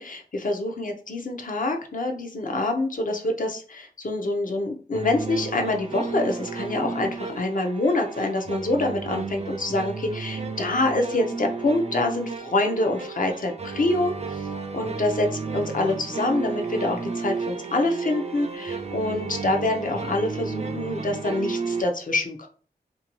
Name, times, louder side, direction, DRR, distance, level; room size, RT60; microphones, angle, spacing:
voice 1, 0.0-14.5 14.7-15.3 15.5-22.5, left 2 dB, 50° left, 3 dB, 0.6 m, -26 dB
sound 1, 4.9-21.8, right 4 dB, 40° right, 0.4 m, -33 dB
2.6 x 2.6 x 2.9 m, 0.40 s
wide cardioid pair, 75°, 17 cm